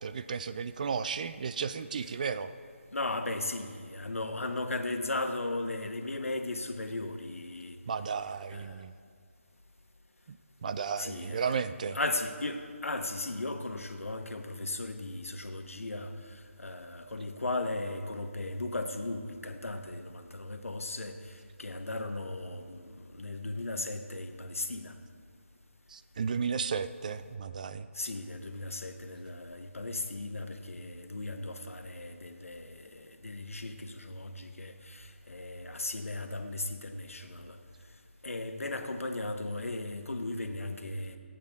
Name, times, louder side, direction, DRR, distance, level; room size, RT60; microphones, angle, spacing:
voice 1, 0.0-2.5 7.9-8.9 10.3-10.4 10.6-12.0 25.9-27.9, right 6 dB, 35° right, 13 dB, 0.4 m, -34 dB
voice 2, 2.9-7.8 8.5-8.8 11.0-11.5 11.9-24.9 27.9-37.6 38.2-41.2, left 2 dB, 85° left, 6 dB, 1.2 m, -36 dB
25.5 x 8.6 x 3.5 m, 2.1 s
figure-of-eight pair, 160°, 7 cm